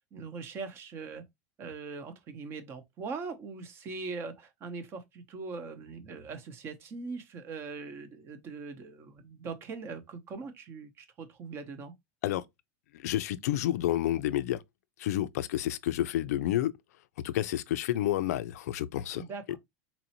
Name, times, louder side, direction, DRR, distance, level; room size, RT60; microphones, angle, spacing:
voice 1, 0.1-1.2 1.6-11.9 19.1-19.6, right 4 dB, 30° right, 0.8 m, -41 dB
voice 2, 12.9-14.6 15.0-16.8 17.2-19.6, left 13 dB, 90° left, 0.4 m, -30 dB
4.1 x 2.6 x 2.8 m
supercardioid pair, 160°, 8 cm